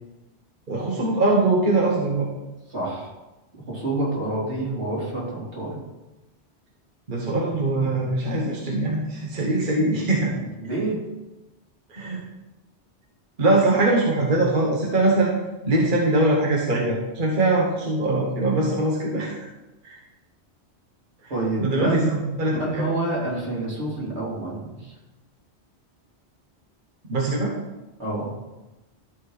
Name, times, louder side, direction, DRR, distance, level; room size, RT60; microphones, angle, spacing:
voice 1, 0.7-2.3 7.1-10.3 11.9-12.2 13.4-15.3 15.6-19.5 19.8-20.0 21.6-22.8 27.1-27.6, right 2 dB, 45° right, -2 dB, 1.4 m, -22 dB
voice 2, 2.7-3.1 3.7-5.8 10.3-11.0 21.3-24.9 28.0-28.3, right 2 dB, 75° right, -6 dB, 3.4 m, -28 dB
12.5 x 4.5 x 4.9 m, 1.0 s
omnidirectional pair, 1.2 m